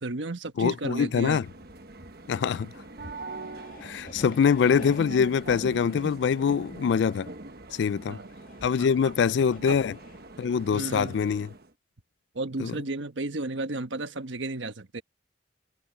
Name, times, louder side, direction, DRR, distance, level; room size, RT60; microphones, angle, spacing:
voice 1, 0.0-1.4 8.1-8.3 8.8-8.9 9.7-9.8 10.7-11.2 12.3-15.0, right 2 dB, 80° right, 1.3 m, -33 dB
voice 2, 0.6-1.5 2.3-2.7 3.8-7.3 7.8-8.2 8.6-9.9 10.4-11.5 12.6-12.7, left 6 dB, 65° left, 0.3 m, -24 dB
sound 1, 0.9-11.7, right 2 dB, 55° right, 1.2 m, -43 dB
sound 2, 1.1-10.4, left 2 dB, 45° left, 2.2 m, -51 dB
head